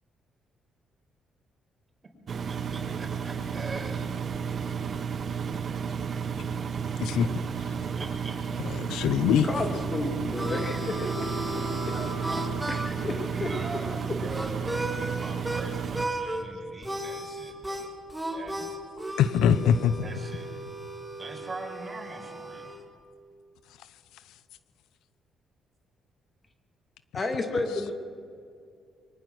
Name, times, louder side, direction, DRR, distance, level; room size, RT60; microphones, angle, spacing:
Engine, 2.3-16.1, right 6 dB, 50° right, 1.4 m, -32 dB
voice 1, 2.5-4.1 7.8-8.5 11.9-12.4 13.3-18.0 18.3-18.7 20.0-20.5 21.2-22.7, right 2 dB, 30° right, 2 dB, 4.8 m, -42 dB
voice 2, 8.8-9.5 19.2-19.9, left 8 dB, 90° left, 14 dB, 0.7 m, -22 dB
voice 3, 9.4-11.0 12.7-13.5 27.1-27.9, left 2 dB, 35° left, 5 dB, 2.4 m, -31 dB
Harmonica, 9.8-15.6 15.9-16.4 16.8-22.8, right 1 dB, 5° right, 2.5 m, -36 dB
23.5 x 19.0 x 6.4 m, 2.4 s
cardioid pair, 90°, 0 cm